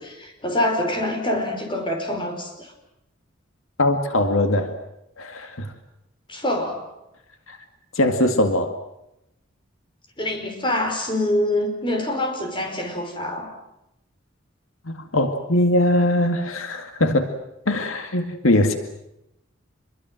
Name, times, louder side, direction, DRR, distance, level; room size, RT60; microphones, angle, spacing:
voice 1, 0.0-2.7 6.3-6.8 10.2-13.5, left 1 dB, 25° left, 4 dB, 5.2 m, -25 dB
voice 2, 3.8-4.7 5.2-5.7 7.5-7.6 8.0-8.8 14.9-17.3 17.7-18.8, left 1 dB, 85° left, 7 dB, 2.2 m, -21 dB
27.0 x 22.5 x 7.7 m, 0.86 s
head